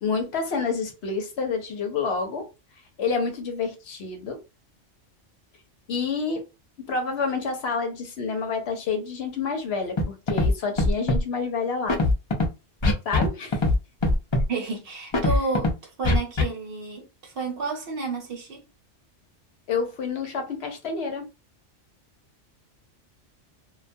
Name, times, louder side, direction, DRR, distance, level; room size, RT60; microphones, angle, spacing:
voice 1, 0.0-2.5 3.0-4.4 5.9-6.4 6.8-12.0 13.0-13.6 19.7-21.3, left 4 dB, 65° left, 0.8 m, -28 dB
Scratching (performance technique), 10.0-10.1 10.3-10.5 10.8-11.2 11.9-12.4 12.8-13.3 13.5-13.7 14.0-14.4 15.1-15.7 16.0-16.4, left 2 dB, 40° left, 0.4 m, -21 dB
voice 2, 14.5-18.6, right 4 dB, 55° right, 0.8 m, -31 dB
2.3 x 2.2 x 2.6 m
omnidirectional pair, 1.2 m